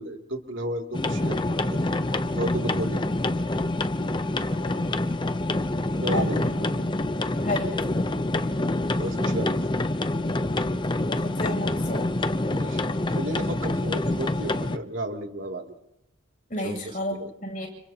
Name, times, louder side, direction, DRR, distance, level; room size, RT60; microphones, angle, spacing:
voice 1, 0.0-1.4 1.7-1.8 2.3-3.1 6.0-6.4 8.5-8.7 8.9-9.6 12.5-15.8 16.6-16.8 17.1-17.3, right 1 dB, 75° right, 2 dB, 2.8 m, -33 dB
sound 1, 0.9-14.8, left 2 dB, 25° left, 0.7 m, -26 dB
voice 2, 4.5-5.0 6.0-6.8 7.4-8.0 10.5-12.1 16.5-17.7, left 1 dB, 40° left, 1 dB, 7.8 m, -33 dB
30.0 x 30.0 x 2.9 m, 0.84 s
head